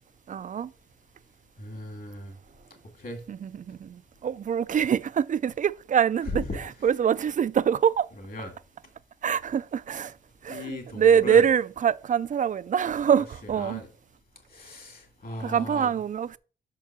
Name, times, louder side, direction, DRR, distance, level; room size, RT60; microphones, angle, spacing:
voice 1, 0.3-0.7 3.3-8.1 9.2-10.2 10.4-13.8 15.4-16.4, right 8 dB, 40° right, 0.4 m, -24 dB
voice 2, 1.6-2.4 3.0-3.2 6.4-6.6 8.2-8.5 10.5-11.5 13.1-13.9 14.5-15.9, left 2 dB, 45° left, 2.3 m, -38 dB
5.8 x 4.5 x 6.0 m
cardioid pair, 85°, 21 cm